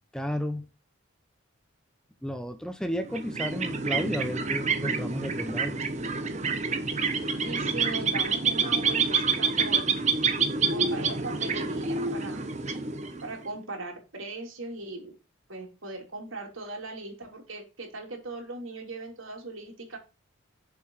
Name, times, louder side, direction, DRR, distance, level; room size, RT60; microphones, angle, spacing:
voice 1, 0.1-0.7 2.2-5.7, equal, 5° left, 0.6 m, -32 dB
sound 1, 3.1-13.5, right 5 dB, 35° right, 1.1 m, -28 dB
voice 2, 7.2-10.0 10.7-12.4 13.2-15.1 15.5-20.0, right 2 dB, 75° right, 3.3 m, -39 dB
7.0 x 6.8 x 4.7 m
head